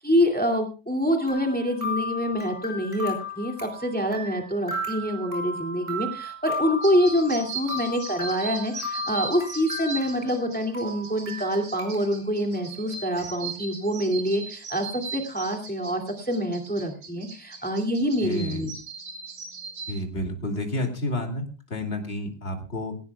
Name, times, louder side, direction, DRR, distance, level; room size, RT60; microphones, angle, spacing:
voice 1, 0.0-18.7, equal, 5° left, 3 dB, 2.3 m, -26 dB
sound 1, 1.3-10.5 10.7-12.2 12.5-12.6 13.2-13.3, left 2 dB, 20° right, 5.3 m, -35 dB
sound 2, 6.8-20.0, right 4 dB, 85° right, 3.5 m, -38 dB
voice 2, 18.2-18.7 19.9-22.9, left 1 dB, 35° left, 3 dB, 2.7 m, -30 dB
18.0 x 17.5 x 2.3 m, 0.34 s
omnidirectional pair, 1.9 m